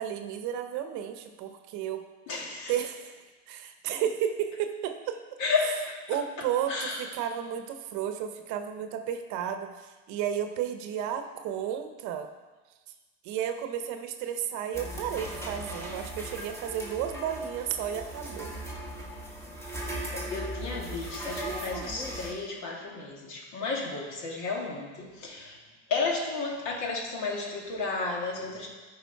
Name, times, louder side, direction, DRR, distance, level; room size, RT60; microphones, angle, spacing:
voice 1, 0.0-2.0 2.7-5.2 6.1-12.3 13.2-18.5, right 9 dB, 55° right, 7 dB, 0.9 m, -33 dB
voice 2, 2.3-2.7 5.4-6.0 6.7-7.0 19.7-19.8 20.1-25.6 25.9-28.7, left 4 dB, 55° left, -1 dB, 2.3 m, -32 dB
sound 1, 14.7-22.3, right 1 dB, 5° left, 1.5 m, -38 dB
12.5 x 5.0 x 4.6 m, 1.3 s
supercardioid pair, 125°, 36 cm